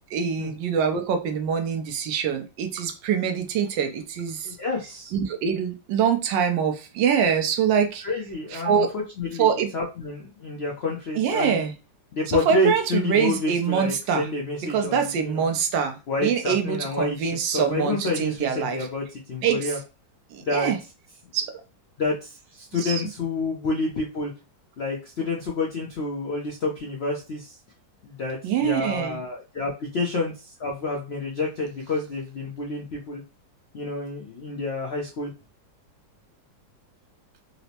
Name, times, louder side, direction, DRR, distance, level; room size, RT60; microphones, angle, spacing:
voice 1, 0.1-4.6 5.1-8.0 8.5-8.9 9.4-9.7 11.2-11.7 12.3-14.3 14.7-18.9 19.4-19.7 20.3-20.8 21.3-21.5 22.8-23.0 28.4-29.2, right 7 dB, 80° right, 6 dB, 1.3 m, -24 dB
voice 2, 4.4-5.1 8.0-11.7 12.1-15.5 16.1-19.8 20.4-20.7 22.0-24.3 24.8-27.5 28.0-33.2 33.7-35.3, left 2 dB, 90° left, -1 dB, 0.5 m, -29 dB
4.3 x 2.0 x 2.8 m, 0.30 s
omnidirectional pair, 2.0 m